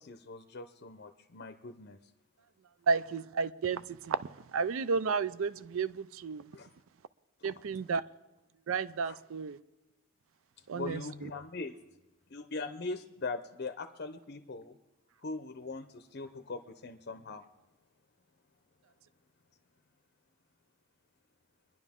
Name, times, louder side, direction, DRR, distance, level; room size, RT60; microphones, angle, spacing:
voice 1, 0.0-2.0 6.5-6.7 7.4-7.5 9.0-9.2 10.7-11.8 12.3-14.8 15.2-17.4, left 3 dB, 50° left, 7 dB, 0.6 m, -41 dB
voice 2, 2.9-4.2 4.5-6.4 7.4-8.0 8.7-9.6 10.7-11.0, right 5 dB, 75° right, 17 dB, 0.4 m, -32 dB
23.5 x 11.0 x 3.6 m, 1.0 s
head